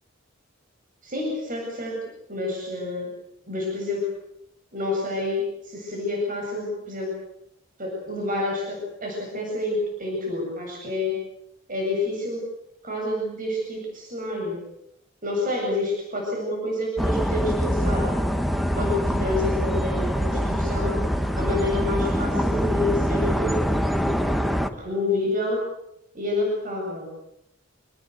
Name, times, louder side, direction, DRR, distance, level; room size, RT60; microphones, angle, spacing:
voice 1, 1.0-3.1 3.5-4.1 4.7-7.1 7.8-11.2 11.7-12.5 12.8-14.6 15.2-18.1 18.7-21.0 21.4-23.6 24.7-25.6 26.1-27.1, left 2 dB, 45° right, 0 dB, 8.0 m, -28 dB
sound 1, 17.0-24.7, equal, ahead, 1.5 m, -24 dB
27.5 x 20.0 x 8.2 m, 0.78 s
head